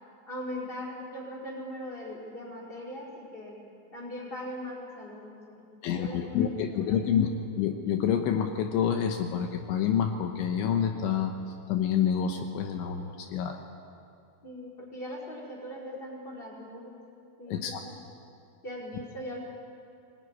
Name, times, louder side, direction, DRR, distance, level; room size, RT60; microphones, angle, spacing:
voice 1, 0.3-3.6 3.9-6.5 6.7-7.0 14.4-17.0 17.4-17.9 18.6-19.5, equal, 10° left, -3 dB, 4.0 m, -40 dB
voice 2, 5.8-7.3 7.6-11.3 11.7-13.6 17.5-17.8, left 8 dB, 75° left, 5 dB, 3.3 m, -28 dB
23.5 x 20.0 x 9.7 m, 2.5 s
omnidirectional pair, 5.6 m